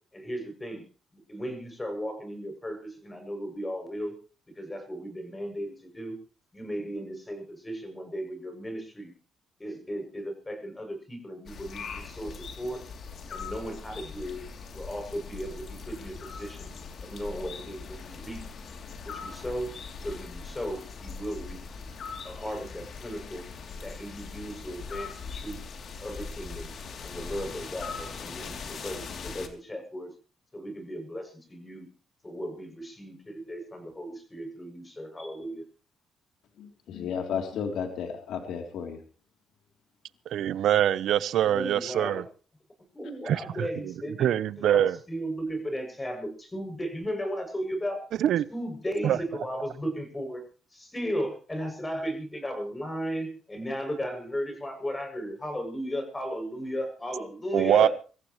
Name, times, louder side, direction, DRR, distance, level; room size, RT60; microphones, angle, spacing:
voice 1, 0.1-0.8 1.1-4.1 4.5-6.2 6.5-9.1 9.6-12.9 13.3-14.4 14.7-16.7 17.0-18.4 19.0-21.6 22.2-23.5 23.8-25.6 26.0-26.7 27.0-30.1 30.5-31.9 32.2-35.6 41.4-42.3 42.9-44.3 44.6-48.0 48.5-50.4 50.7-57.9, equal, 20° left, 7.5 m, -35 dB
sound 1, 11.5-29.5, left 5 dB, 55° left, 3.2 m, -41 dB
voice 2, 36.6-39.0 40.5-40.6, left 7 dB, 75° left, 3.3 m, -33 dB
voice 3, 40.3-42.2 43.3-43.9 44.2-45.0 48.2-48.5 49.0-49.2 57.5-57.9, right 11 dB, 75° right, 0.8 m, -24 dB
25.0 x 15.0 x 3.2 m
cardioid pair, 90°, 0 cm